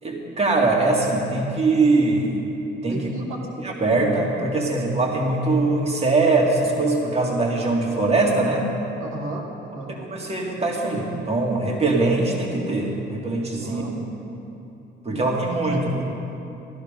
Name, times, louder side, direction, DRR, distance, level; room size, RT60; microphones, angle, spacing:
voice 1, 0.0-2.4 2.8-3.1 3.6-8.7 9.9-14.0 14.2-14.3 15.0-16.1, right 2 dB, 30° right, -1 dB, 2.3 m, -22 dB
voice 2, 2.9-3.5 9.0-9.9 13.6-13.9 15.1-15.4 15.7-15.8, right 2 dB, 85° right, -1 dB, 1.7 m, -34 dB
14.5 x 11.5 x 5.2 m, 2.9 s
cardioid pair, 90°, 20 cm